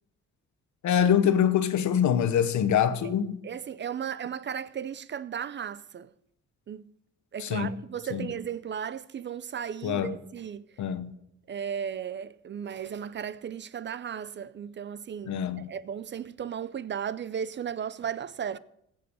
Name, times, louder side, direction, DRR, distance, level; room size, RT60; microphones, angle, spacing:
voice 1, 0.8-3.4 7.4-7.7 8.1-8.3 9.8-10.1 10.8-11.1 15.2-15.7, left 9 dB, 70° left, 1.1 m, -24 dB
voice 2, 3.4-6.1 6.7-6.9 7.3-10.7 11.5-18.6, right 8 dB, 40° right, 0.5 m, -35 dB
15.5 x 5.4 x 6.9 m
cardioid pair, 90°, 30 cm